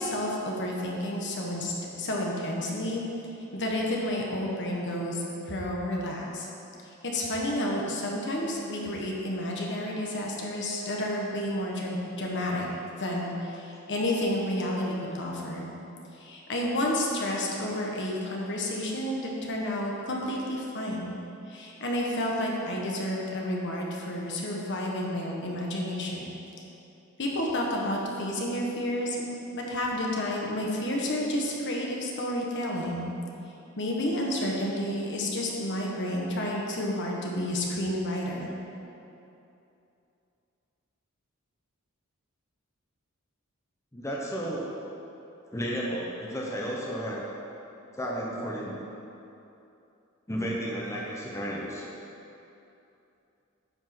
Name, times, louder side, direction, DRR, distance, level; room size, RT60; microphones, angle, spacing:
voice 1, 0.0-3.0 3.5-6.5 7.0-12.7 13.0-15.7 16.2-21.2 21.5-26.2 27.2-29.2 29.5-33.1 33.8-38.5, left 1 dB, 55° left, -2 dB, 1.4 m, -30 dB
voice 2, 43.9-44.7 45.5-47.2 48.0-48.7 50.3-51.8, equal, 15° left, -4 dB, 0.9 m, -32 dB
9.2 x 5.4 x 6.0 m, 2.8 s
head